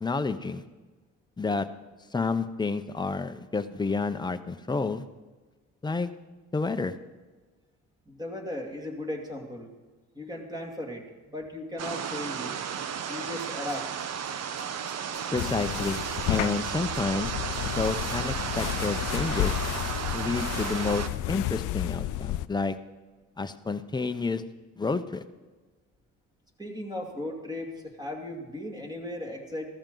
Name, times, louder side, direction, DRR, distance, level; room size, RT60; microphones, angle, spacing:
voice 1, 0.0-0.6 1.4-1.7 2.1-5.0 5.8-6.1 6.5-6.9 15.3-16.0 16.3-17.3 17.6-19.5 20.1-22.8 23.4-24.4 24.8-25.2, left 4 dB, 15° left, 9 dB, 0.7 m, -29 dB
voice 2, 8.1-9.7 10.1-12.5 13.1-13.9 26.6-29.7, left 1 dB, 15° right, 1 dB, 2.6 m, -36 dB
sound 1, 11.8-21.1, right 7 dB, 60° right, 0.9 m, -34 dB
Tools, 12.8-12.9 13.1-14.3 14.6-18.2 18.6-18.7, right 3 dB, 85° right, 3.4 m, -49 dB
sound 2, 15.4-22.5, left 14 dB, 90° left, 0.5 m, -32 dB
15.0 x 13.5 x 3.9 m, 1.3 s
cardioid pair, 90°, 30 cm